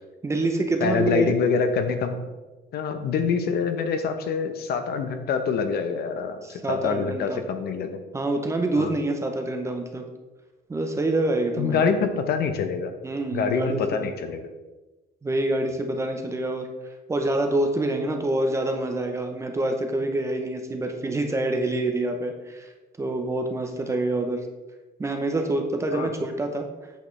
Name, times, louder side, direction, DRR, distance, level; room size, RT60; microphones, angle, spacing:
voice 1, 0.2-1.4 6.4-7.4 8.1-10.1 10.7-11.9 13.0-14.1 15.2-16.7 17.1-22.7 23.0-24.5 25.0-26.7, right 2 dB, 15° right, 4 dB, 0.6 m, -26 dB
voice 2, 0.8-2.2 2.7-8.0 8.8-8.9 11.6-12.9 13.3-14.5 25.9-26.1, left 6 dB, 65° left, 7 dB, 0.8 m, -25 dB
8.2 x 6.6 x 3.2 m, 1.1 s
cardioid pair, 175°, 18 cm